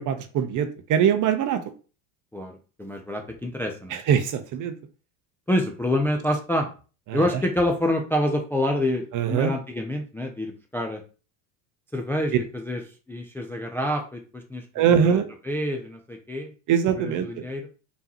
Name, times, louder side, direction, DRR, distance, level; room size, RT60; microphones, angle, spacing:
voice 1, 0.0-1.6 3.9-4.7 7.1-7.2 9.1-9.5 14.8-15.3 16.7-17.4, right 8 dB, 40° right, 9 dB, 0.8 m, -22 dB
voice 2, 2.3-4.0 5.5-6.7 7.1-11.0 11.9-12.8 13.1-15.2 15.4-16.5 16.9-17.7, left 1 dB, 5° left, 2 dB, 0.5 m, -27 dB
4.1 x 3.6 x 2.9 m, 0.36 s
supercardioid pair, 105°, 48 cm